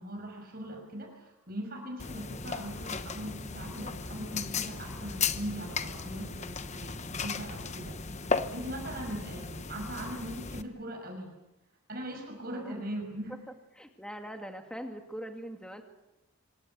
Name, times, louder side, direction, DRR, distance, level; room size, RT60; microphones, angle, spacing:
voice 1, 0.0-11.3 11.9-13.3, right 1 dB, 45° right, 3 dB, 6.0 m, -40 dB
sound 1, 2.0-10.6, left 5 dB, 30° left, 1.0 m, -36 dB
voice 2, 12.5-12.8 13.7-15.8, equal, 5° left, 4 dB, 2.2 m, -42 dB
26.0 x 17.0 x 9.4 m, 0.99 s
head